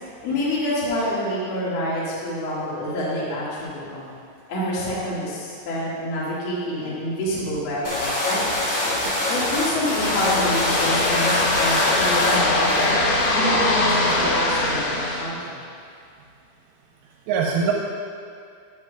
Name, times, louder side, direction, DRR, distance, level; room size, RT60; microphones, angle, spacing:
voice 1, 0.2-4.1 4.5-8.7 9.3-12.9 13.3-15.6, left 1 dB, 60° left, -8 dB, 1.6 m, -27 dB
sound 1, 7.8-13.3, left 1 dB, 40° left, 2.2 m, -25 dB
sound 2, 10.0-15.3, left 2 dB, 90° left, 3.8 m, -22 dB
voice 2, 17.3-17.7, right 6 dB, 85° right, -1 dB, 3.0 m, -23 dB
9.8 x 9.4 x 2.2 m, 2.3 s
omnidirectional pair, 5.7 m